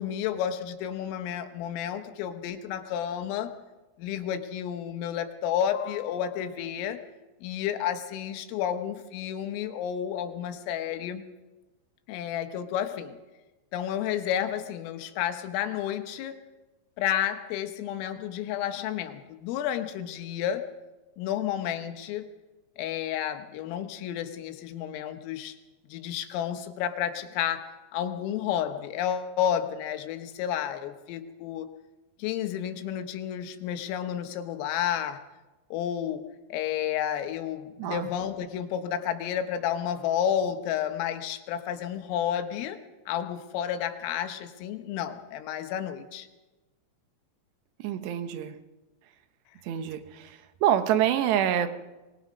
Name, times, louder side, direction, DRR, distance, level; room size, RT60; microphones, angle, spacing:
voice 1, 0.0-3.6 4.0-7.0 7.4-11.2 12.1-13.2 13.7-16.4 17.0-20.7 21.2-22.3 22.8-25.6 25.9-31.7 32.2-35.2 35.7-42.8 43.1-46.3, left 10 dB, 85° left, 8 dB, 3.8 m, -31 dB
voice 2, 47.8-48.5 49.7-50.3 50.6-51.7, right 10 dB, 75° right, 9 dB, 2.8 m, -26 dB
24.5 x 21.0 x 5.3 m, 1.1 s
omnidirectional pair, 5.8 m